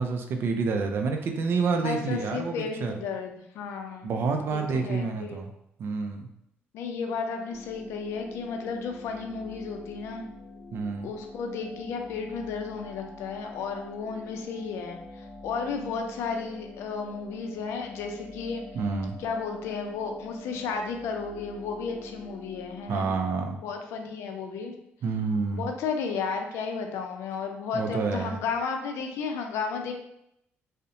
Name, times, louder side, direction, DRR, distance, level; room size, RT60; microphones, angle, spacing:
voice 1, 0.0-2.9 4.0-5.5 5.8-6.3 10.7-11.1 18.8-19.2 22.9-23.6 25.0-25.7 27.7-28.4, right 4 dB, 60° right, 4 dB, 0.4 m, -28 dB
voice 2, 1.8-4.1 4.5-5.4 6.7-10.3 11.0-18.6 19.2-23.1 23.6-24.8 25.6-29.9, left 5 dB, 80° left, 4 dB, 0.4 m, -33 dB
sound 1, 7.5-23.3, left 2 dB, 45° left, 0.8 m, -46 dB
2.5 x 2.0 x 2.7 m, 0.77 s
cardioid pair, 90°, 5 cm